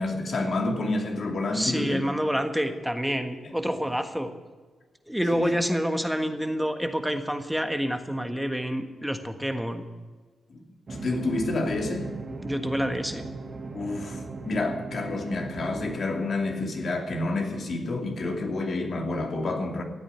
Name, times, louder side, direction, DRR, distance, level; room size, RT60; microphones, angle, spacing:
voice 1, 0.0-2.1 3.4-3.5 5.3-5.6 10.5-10.6 10.9-12.1 13.7-19.8, left 2 dB, 60° left, 2 dB, 2.7 m, -29 dB
voice 2, 1.5-4.3 5.1-9.8 12.4-13.2, equal, 5° right, 7 dB, 1.5 m, -28 dB
sound 1, 10.9-16.0, right 3 dB, 45° right, 1.9 m, -37 dB
15.5 x 8.7 x 8.2 m, 1.4 s
supercardioid pair, 55°, 0 cm